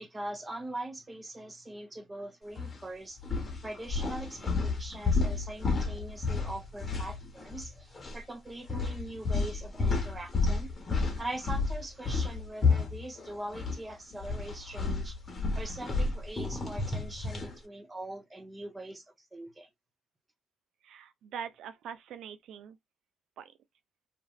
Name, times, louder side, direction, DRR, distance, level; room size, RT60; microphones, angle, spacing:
voice 1, 0.0-3.2 3.6-10.7 11.2-15.2 15.5-19.0 19.3-19.7, right 1 dB, 20° right, 0.8 m, -42 dB
sound 1, 2.6-2.8 3.2-7.7 7.9-8.2 8.7-13.8 14.1-17.6, left 4 dB, 30° left, 1.0 m, -31 dB
voice 2, 20.8-22.8 23.4-23.5, right 8 dB, 80° right, 0.3 m, -43 dB
3.0 x 2.5 x 2.3 m
cardioid pair, 90°, 0 cm